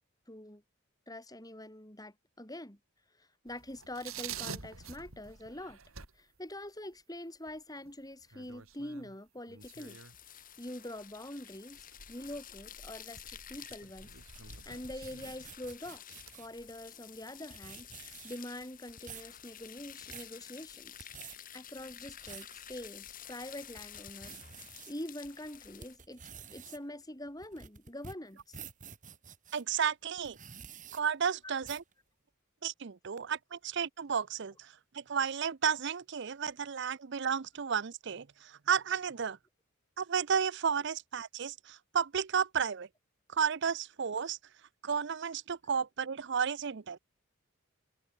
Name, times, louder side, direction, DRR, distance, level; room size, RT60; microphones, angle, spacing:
voice 1, 0.3-0.6 1.1-2.8 3.2-5.8 6.1-10.0 10.3-14.1 14.4-21.1 21.5-26.2 26.5-28.6 31.4-31.6 37.2-37.3, left 1 dB, 20° left, 4.9 m, -45 dB
sound 1, 3.5-6.7 6.9-7.0 7.5-10.6 11.0-18.4 18.8-18.9 19.1-19.9, right 6 dB, 80° right, 3.9 m, -49 dB
sound 2, 9.6-26.0, left 10 dB, 40° left, 3.5 m, -51 dB
sound 3, 14.2-16.6 17.2-17.3 17.5-18.5 18.9-19.3 19.8-20.3 20.9-21.4 21.9-22.5 23.0-23.1 23.6-24.9 25.4-29.6 30.2-31.0 31.6-31.9, right 7 dB, 35° right, 4.5 m, -49 dB
voice 2, 29.5-30.4 30.9-31.8 32.6-39.4 40.0-42.9 43.3-44.4 44.8-47.0, right 7 dB, 55° right, 0.6 m, -33 dB
head